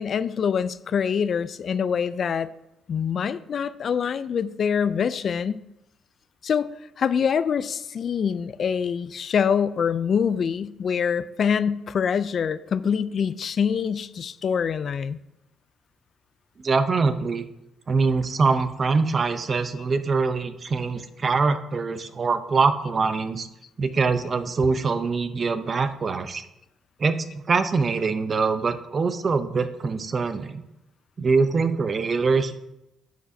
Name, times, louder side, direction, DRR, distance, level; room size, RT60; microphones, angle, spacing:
voice 1, 0.0-2.5 2.9-5.6 6.4-6.7 7.0-15.2, left 7 dB, 55° left, 15 dB, 0.3 m, -25 dB
voice 2, 16.6-17.5 17.9-23.5 23.8-26.4 27.0-30.6 31.2-32.6, right 4 dB, 40° right, 10 dB, 0.6 m, -23 dB
10.5 x 6.3 x 2.7 m, 0.88 s
cardioid pair, 90°, 0 cm